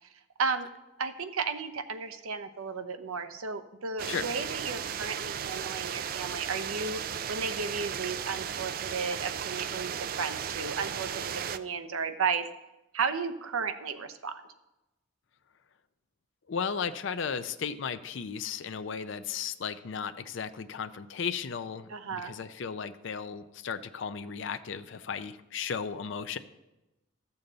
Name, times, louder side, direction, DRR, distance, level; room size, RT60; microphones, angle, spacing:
voice 1, 1.0-7.0 7.3-12.4 12.9-14.4 21.9-22.3, right 5 dB, 90° right, 9 dB, 0.8 m, -34 dB
sound 1, 4.0-11.6, right 8 dB, 45° right, 0.3 m, -35 dB
voice 2, 16.5-26.4, left 6 dB, 60° left, 10 dB, 0.5 m, -35 dB
13.5 x 7.0 x 3.9 m, 0.97 s
head